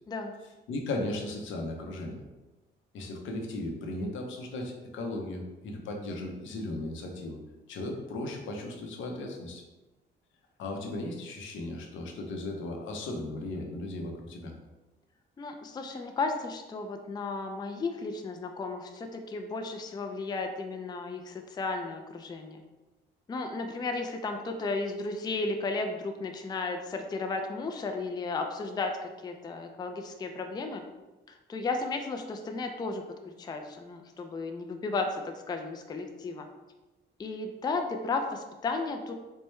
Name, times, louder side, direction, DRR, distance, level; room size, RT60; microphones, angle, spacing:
voice 1, 0.7-2.2 2.9-7.4 7.7-9.6 10.6-14.5, left 2 dB, 80° left, 1 dB, 0.7 m, -36 dB
voice 2, 15.4-22.6 23.3-30.8 31.3-33.0 33.4-36.5 37.2-39.1, left 3 dB, 20° left, 4 dB, 0.3 m, -34 dB
4.5 x 2.2 x 3.1 m, 1.1 s
cardioid pair, 90°, 20 cm